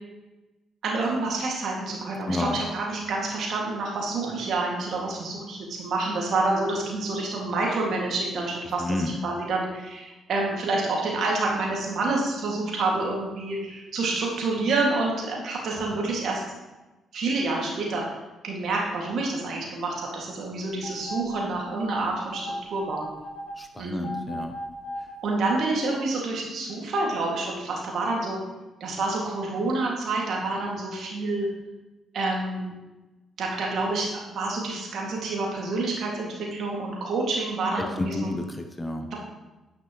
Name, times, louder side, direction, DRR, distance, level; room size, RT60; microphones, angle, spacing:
voice 1, 0.8-16.4 17.1-18.0 18.4-23.1 23.8-24.2 25.2-28.4 28.8-31.5 32.1-32.7 33.4-38.4 39.0-39.1, right 3 dB, 65° right, -2 dB, 2.0 m, -28 dB
voice 2, 2.3-2.6 8.8-9.1 23.6-24.5 37.8-39.1, left 2 dB, 15° left, 5 dB, 0.8 m, -30 dB
sound 1, 20.8-23.5 24.0-25.1 25.6-25.7, left 1 dB, 50° left, 1.4 m, -36 dB
9.7 x 5.8 x 3.0 m, 1.1 s
supercardioid pair, 55°, 0 cm